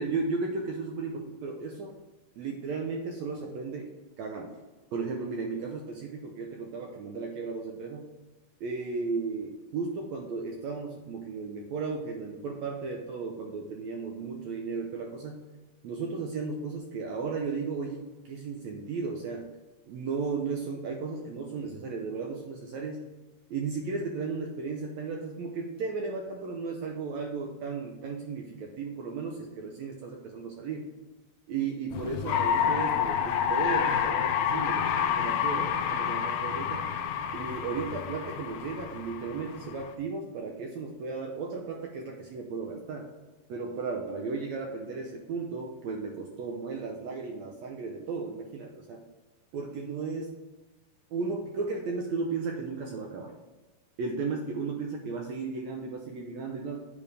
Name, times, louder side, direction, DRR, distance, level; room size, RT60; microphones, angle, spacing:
voice 1, 0.0-2.0 2.4-3.9 4.2-4.6 4.9-8.1 8.6-15.4 15.8-19.5 19.9-23.1 23.5-30.9 31.5-36.9 37.3-43.1 43.5-49.0 49.5-50.4 51.1-53.3 54.0-56.8, right 4 dB, 75° right, 1 dB, 1.7 m, -35 dB
sound 1, 31.9-39.9, left 8 dB, 75° left, 1.8 m, -29 dB
8.6 x 5.2 x 3.4 m, 1.2 s
omnidirectional pair, 3.8 m